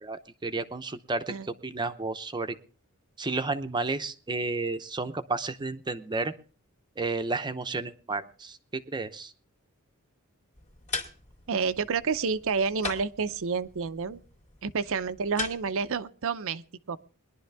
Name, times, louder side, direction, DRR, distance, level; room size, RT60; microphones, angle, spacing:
voice 1, 0.0-1.3 1.6-2.6 3.2-6.3 7.0-9.3, right 3 dB, 20° right, 9 dB, 0.7 m, -32 dB
sound 1, 10.5-16.0, left 3 dB, 35° left, 2.2 m, -40 dB
voice 2, 11.5-14.2 14.6-17.0, right 5 dB, 60° right, 13 dB, 0.6 m, -29 dB
21.5 x 11.0 x 3.4 m, 0.39 s
head